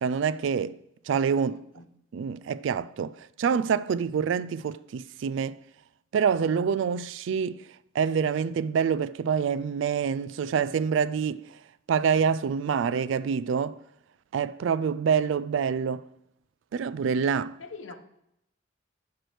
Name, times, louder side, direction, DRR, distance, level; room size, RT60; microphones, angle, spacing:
voice 1, 0.0-0.8 1.1-1.6 2.1-3.1 3.4-5.6 6.1-7.6 7.9-11.4 11.9-13.8 14.3-16.0 16.7-17.6, right 6 dB, 65° right, 0.3 m, -26 dB
voice 2, 1.5-1.9 17.6-17.9, left 4 dB, 75° left, 0.8 m, -43 dB
10.0 x 4.7 x 3.3 m
head